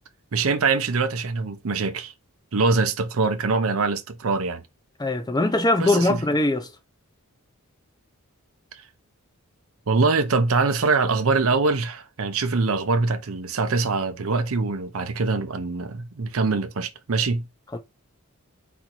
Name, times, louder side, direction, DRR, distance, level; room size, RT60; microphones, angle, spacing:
voice 1, 0.3-2.1 2.5-4.6 5.8-6.2 9.9-17.4, right 4 dB, 70° right, 0.6 m, -23 dB
voice 2, 5.0-6.7 17.7-17.8, left 2 dB, 20° left, 0.6 m, -21 dB
4.2 x 2.6 x 4.4 m
head